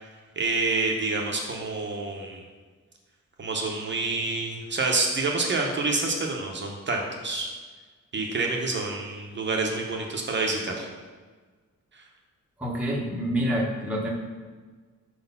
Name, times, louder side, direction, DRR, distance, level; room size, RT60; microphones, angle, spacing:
voice 1, 0.4-2.4 3.4-7.5 8.1-10.9 11.9-12.0, right 3 dB, 35° right, 0 dB, 0.7 m, -28 dB
voice 2, 12.6-14.1, equal, 5° right, -3 dB, 0.7 m, -27 dB
4.7 x 4.1 x 5.4 m, 1.4 s
wide cardioid pair, 155°, 31 cm